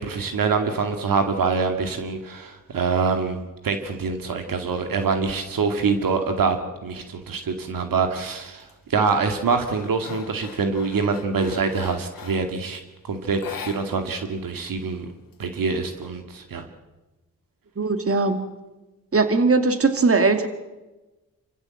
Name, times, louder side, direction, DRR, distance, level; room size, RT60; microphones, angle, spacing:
voice 1, 0.0-15.1 15.4-16.7, right 4 dB, 75° right, 6 dB, 2.3 m, -25 dB
sound 1, 8.4-8.7 9.2-12.6 13.3-14.3 14.5-14.6 15.0-16.0, left 6 dB, 70° left, 2.4 m, -41 dB
voice 2, 17.8-18.4 19.1-20.5, right 3 dB, 40° right, 8 dB, 2.3 m, -19 dB
27.0 x 15.5 x 7.9 m, 1.1 s
cardioid pair, 50°, 34 cm